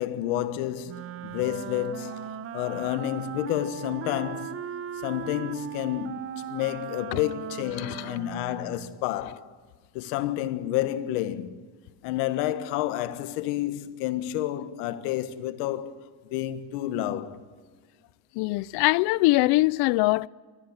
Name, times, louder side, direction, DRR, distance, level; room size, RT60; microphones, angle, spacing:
voice 1, 0.0-4.6 5.0-9.5 9.9-11.6 12.0-15.9 16.2-17.4, left 13 dB, 80° left, 1.6 m, -30 dB
Wind instrument woodwind instrument, 0.9-9.1, right 9 dB, 30° right, 0.8 m, -38 dB
voice 2, 18.4-20.3, left 21 dB, 60° left, 0.6 m, -22 dB
21.0 x 14.0 x 9.7 m
cardioid pair, 140°, 44 cm